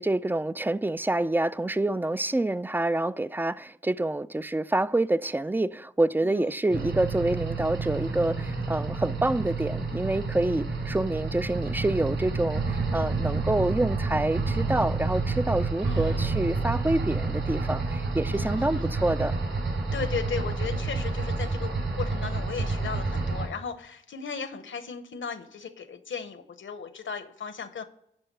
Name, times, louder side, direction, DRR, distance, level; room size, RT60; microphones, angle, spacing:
voice 1, 0.0-19.3, right 2 dB, 10° right, 0.3 m, -27 dB
voice 2, 6.2-6.6 15.8-16.2 18.3-18.9 19.9-27.8, left 6 dB, 65° left, 1.0 m, -36 dB
sound 1, 6.7-23.5, right 3 dB, 70° right, 4.3 m, -29 dB
11.5 x 4.5 x 5.4 m
cardioid pair, 55°, 21 cm